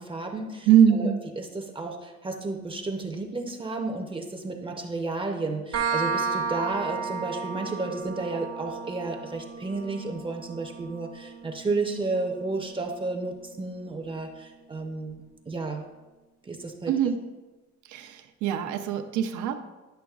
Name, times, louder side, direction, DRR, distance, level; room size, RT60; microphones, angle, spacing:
voice 1, 0.0-15.8 16.4-16.9, right 3 dB, 20° right, 2 dB, 0.6 m, -32 dB
voice 2, 0.7-1.2 16.9-17.2 17.9-19.6, right 8 dB, 85° right, 7 dB, 0.7 m, -22 dB
sound 1, 5.7-13.2, right 5 dB, 55° right, 0.9 m, -34 dB
10.0 x 6.1 x 2.4 m, 1.1 s
cardioid pair, 130°, 29 cm